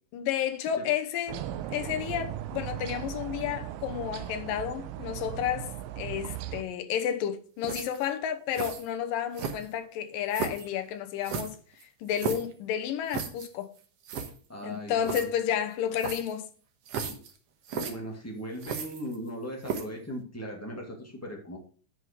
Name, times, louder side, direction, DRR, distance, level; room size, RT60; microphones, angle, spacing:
voice 1, 0.1-1.4 1.7-11.6 12.0-13.7 14.6-16.5, left 9 dB, 85° left, 2.7 m, -31 dB
sound 1, 1.3-6.6, right 12 dB, 80° right, 2.4 m, -37 dB
sound 2, 7.6-8.1 8.5-8.8 9.3-9.8 10.3-10.7 11.2-12.5 13.1-13.5 13.8-13.9 14.0-14.3 15.0-15.2 16.0-16.3 16.9-17.3 17.6-17.9 18.6-19.3 19.6-20.0, right 6 dB, 60° right, 1.8 m, -34 dB
voice 2, 14.5-15.3 17.1-17.2 17.7-21.6, equal, 5° left, 1.3 m, -38 dB
9.7 x 5.5 x 5.1 m
omnidirectional pair, 3.9 m